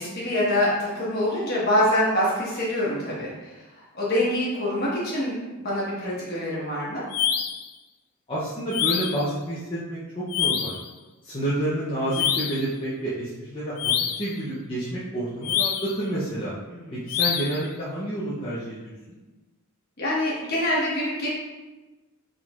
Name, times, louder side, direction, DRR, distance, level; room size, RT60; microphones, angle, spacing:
voice 1, 0.0-3.5 3.9-5.4 5.6-7.0 16.7-17.0 20.0-21.3, left 1 dB, 45° left, -6 dB, 1.2 m, -25 dB
sound 1, 7.1-7.7 8.7-9.3 10.3-10.9 12.1-12.7 13.8-14.3 15.4-16.0 17.1-17.6, left 9 dB, 90° left, 0.3 m, -26 dB
voice 2, 8.3-10.7 11.2-16.5 16.9-19.2, right 1 dB, 25° left, -10 dB, 0.6 m, -29 dB
4.5 x 3.7 x 2.4 m, 1.2 s
head